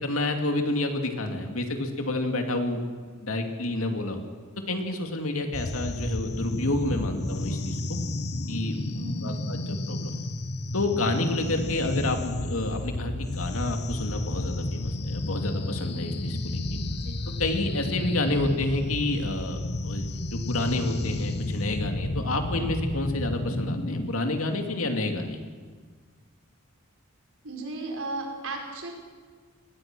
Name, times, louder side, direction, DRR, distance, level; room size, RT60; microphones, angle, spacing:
voice 1, 0.0-2.8 3.2-4.2 4.7-8.0 8.5-8.8 9.2-10.3 10.7-16.8 17.4-19.6 19.8-25.4, left 2 dB, 80° left, 4 dB, 2.5 m, -29 dB
sound 1, 5.5-24.1, left 1 dB, 55° left, 1.1 m, -31 dB
voice 2, 27.4-28.9, right 2 dB, 80° right, 1 dB, 4.8 m, -35 dB
23.0 x 19.5 x 6.2 m, 1.6 s
head